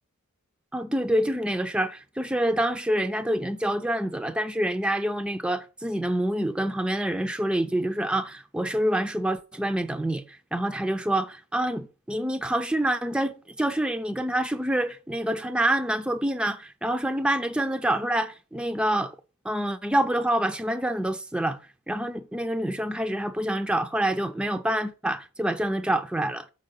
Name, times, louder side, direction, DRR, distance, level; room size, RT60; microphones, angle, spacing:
voice 1, 0.7-19.1 19.4-21.6 21.9-26.5, right 1 dB, 5° right, 0.3 m, -27 dB
6.5 x 4.3 x 5.3 m
head